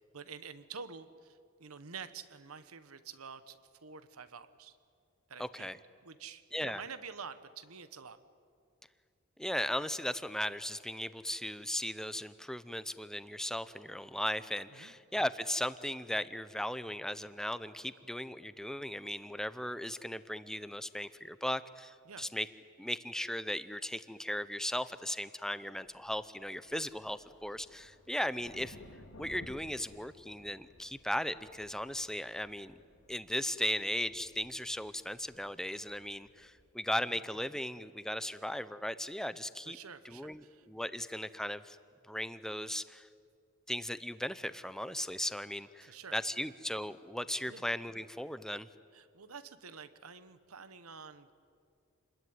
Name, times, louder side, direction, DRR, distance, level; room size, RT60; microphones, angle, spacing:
voice 1, 0.1-4.8 5.3-8.2 14.7-14.9 22.0-22.3 37.1-37.2 39.6-40.7 45.8-46.2 47.5-47.6 48.9-51.3, right 6 dB, 90° right, 12 dB, 1.2 m, -48 dB
voice 2, 5.4-5.8 6.5-6.8 9.4-22.5 22.8-28.8 29.2-32.8 33.1-39.8 40.0-41.8 42.1-43.1 43.7-48.7, left 1 dB, ahead, 13 dB, 0.6 m, -37 dB
sound 1, 25.8-36.7, left 1 dB, 85° left, 3.5 m, -58 dB
28.5 x 21.0 x 9.6 m, 2.3 s
head